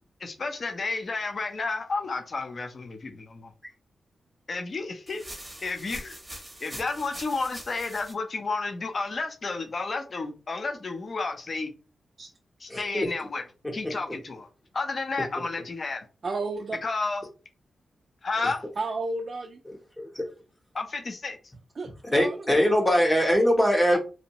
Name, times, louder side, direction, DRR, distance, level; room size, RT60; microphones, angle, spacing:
voice 1, 0.2-3.5 4.5-6.2 6.6-11.7 12.6-13.4 13.7-14.5 14.7-16.1 16.8-17.2 18.2-18.6 20.7-21.4, left 3 dB, 50° left, 0.5 m, -31 dB
sound 1, 5.1-8.1, right 1 dB, 15° right, 0.7 m, -43 dB
voice 2, 12.7-13.1 20.0-20.2 22.1-24.0, equal, 15° left, 0.8 m, -22 dB
voice 3, 16.2-16.8 18.8-19.6 21.8-22.7, right 3 dB, 50° right, 0.3 m, -32 dB
2.7 x 2.0 x 2.9 m
wide cardioid pair, 95°, 0 cm